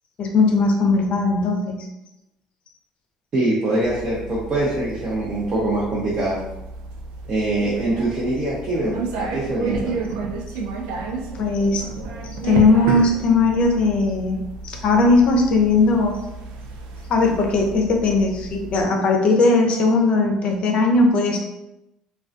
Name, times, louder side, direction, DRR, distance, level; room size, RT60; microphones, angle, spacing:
voice 1, 0.2-1.9 11.3-11.8 12.4-16.2 17.1-21.4, left 3 dB, 55° left, 2 dB, 0.5 m, -18 dB
voice 2, 3.3-6.4 7.3-10.0, right 2 dB, 45° right, -7 dB, 0.7 m, -23 dB
sound 1, 3.8-18.8, right 4 dB, 80° right, 0.3 m, -32 dB
2.3 x 2.2 x 2.5 m, 0.92 s
supercardioid pair, 80°, 2 cm